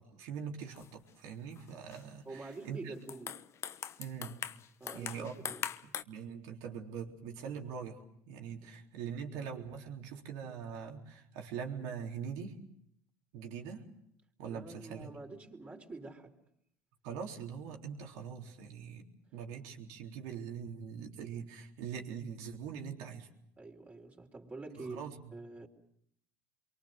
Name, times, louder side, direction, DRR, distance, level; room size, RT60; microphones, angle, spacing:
voice 1, 0.0-2.9 4.0-4.4 4.9-5.5 5.8-12.6 13.3-13.9 14.4-15.1 17.0-19.0 19.3-23.3 24.8-25.2, right 7 dB, 75° right, 2 dB, 3.7 m, -43 dB
sound 1, 0.7-1.1 1.5-2.0 2.5-2.7 3.0-6.0, left 9 dB, 45° left, 1.0 m, -42 dB
voice 2, 2.2-3.5 4.8-5.6 8.6-8.7 14.5-16.4 23.6-25.7, right 3 dB, 25° right, 2 dB, 4.4 m, -47 dB
27.5 x 23.5 x 6.5 m, 0.72 s
supercardioid pair, 95°, 6 cm